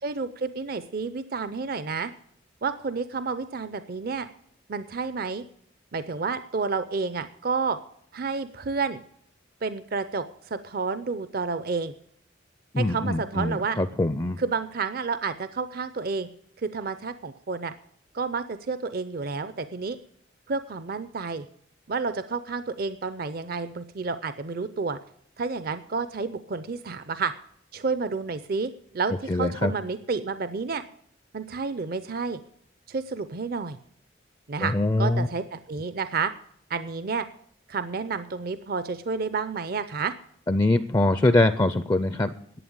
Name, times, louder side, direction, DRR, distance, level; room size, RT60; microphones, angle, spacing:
voice 1, 0.0-2.1 2.6-4.3 4.7-5.4 5.9-7.8 8.1-9.0 9.6-10.2 10.5-11.9 12.8-13.8 14.4-16.3 16.6-17.7 18.1-20.0 20.5-21.5 21.9-25.0 25.4-27.3 27.7-30.8 31.3-32.4 32.9-33.8 34.5-36.3 36.7-37.2 37.7-40.1, right 4 dB, 50° right, 12 dB, 0.5 m, -30 dB
voice 2, 12.7-14.4 29.3-29.7 34.6-35.3 40.5-42.6, left 2 dB, 20° left, 12 dB, 0.4 m, -23 dB
11.0 x 8.5 x 8.6 m, 0.66 s
head